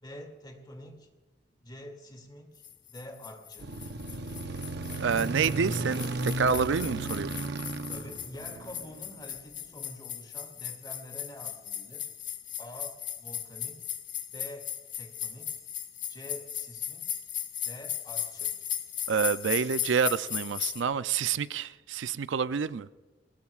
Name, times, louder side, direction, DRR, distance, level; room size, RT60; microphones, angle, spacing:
voice 1, 0.0-1.1 1.6-2.6 2.9-3.7 7.9-12.1 12.6-13.8 14.3-15.6 16.1-17.2 17.6-18.5, equal, 25° left, 2.4 m, -46 dB
sound 1, 2.6-20.8, left 9 dB, 45° left, 1.3 m, -37 dB
sound 2, 3.6-9.1, right 2 dB, 60° right, 0.8 m, -35 dB
voice 2, 5.0-7.3 19.1-22.9, right 6 dB, 80° right, 0.5 m, -28 dB
22.0 x 20.0 x 2.4 m
head